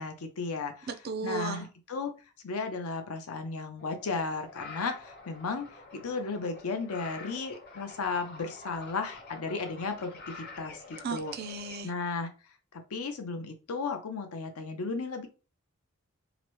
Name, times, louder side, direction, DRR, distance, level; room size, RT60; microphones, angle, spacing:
voice 1, 0.0-0.9 1.2-2.1 2.4-11.3 11.8-12.3 12.7-15.3, left 4 dB, 80° left, 6 dB, 0.6 m, -35 dB
voice 2, 0.9-1.7 11.0-11.9, right 4 dB, 45° right, 8 dB, 0.4 m, -35 dB
sound 1, 3.8-11.8, left 3 dB, 50° left, 0.8 m, -47 dB
2.9 x 2.1 x 3.0 m, 0.33 s
head